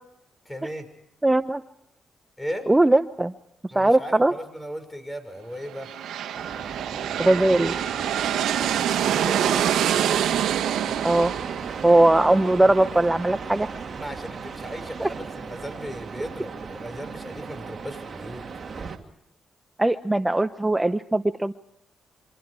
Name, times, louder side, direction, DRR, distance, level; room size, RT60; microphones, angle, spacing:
voice 1, 0.5-0.9 2.4-2.7 3.7-5.9 8.7-9.7 14.0-18.4, equal, 10° left, 10 dB, 5.9 m, -37 dB
voice 2, 1.2-1.6 2.7-3.3 3.7-4.3 7.2-7.7 11.0-11.3 11.8-13.7 15.0-15.1 19.8-21.5, right 2 dB, 15° right, 12 dB, 0.8 m, -20 dB
sound 1, 5.7-13.4, right 10 dB, 80° right, 1.4 m, -26 dB
sound 2, 6.3-19.0, right 5 dB, 45° right, 2.5 m, -37 dB
27.5 x 25.0 x 4.8 m, 0.78 s
supercardioid pair, 65°, 0 cm